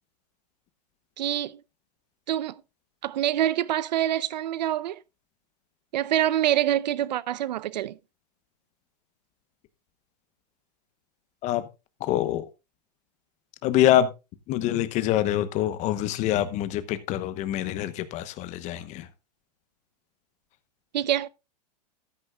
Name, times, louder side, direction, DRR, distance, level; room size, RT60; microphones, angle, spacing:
voice 1, 1.2-1.6 2.3-2.6 3.0-5.0 5.9-8.0 20.9-21.3, right 12 dB, 85° right, 0.6 m, -25 dB
voice 2, 12.0-12.5 13.6-14.1 14.5-19.1, left 12 dB, 35° left, 1.0 m, -25 dB
13.5 x 10.0 x 2.3 m
supercardioid pair, 140°, 21 cm